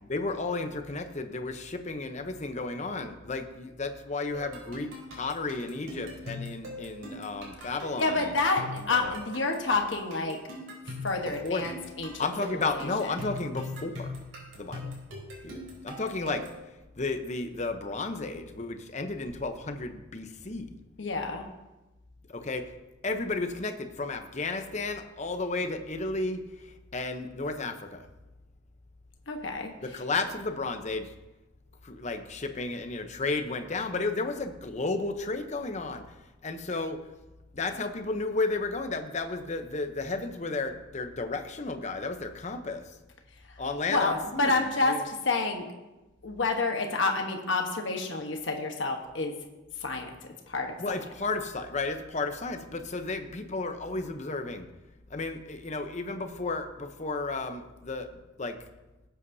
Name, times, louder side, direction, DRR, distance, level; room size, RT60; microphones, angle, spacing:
voice 1, 0.0-8.3 8.8-9.2 11.2-11.7 12.2-14.1 14.5-14.9 15.4-16.5 17.0-20.7 22.3-22.7 23.0-28.0 29.8-31.1 31.8-36.0 36.4-37.0 37.5-42.8 43.6-45.1 50.8-54.7 55.1-58.6, left 3 dB, 35° left, 7 dB, 0.8 m, -33 dB
sound 1, 4.3-16.6, left 2 dB, 85° right, 3.9 m, -41 dB
voice 2, 8.0-10.4 11.0-12.1 12.7-12.9 21.0-21.5 29.3-29.7 43.9-45.6 46.2-49.3 49.8-50.1 50.5-50.7, left 3 dB, 70° left, 3 dB, 1.2 m, -28 dB
18.0 x 8.3 x 2.7 m, 1.0 s
head